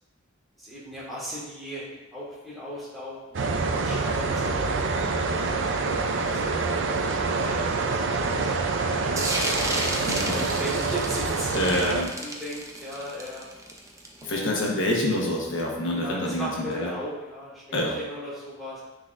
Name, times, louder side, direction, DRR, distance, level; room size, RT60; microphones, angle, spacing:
voice 1, 0.6-1.8 2.1-4.5 5.2-11.7 12.2-13.4 14.2-14.5 15.9-18.8, equal, ahead, -9 dB, 1.9 m, -38 dB
sound 1, 3.3-12.0, right 3 dB, 65° right, 0.6 m, -26 dB
sound 2, 9.2-14.5, right 2 dB, 15° right, 0.7 m, -32 dB
voice 2, 10.1-10.5 11.5-12.1 14.2-16.9 17.7-18.0, left 1 dB, 65° left, -2 dB, 1.2 m, -27 dB
9.6 x 4.0 x 2.6 m, 1.1 s
head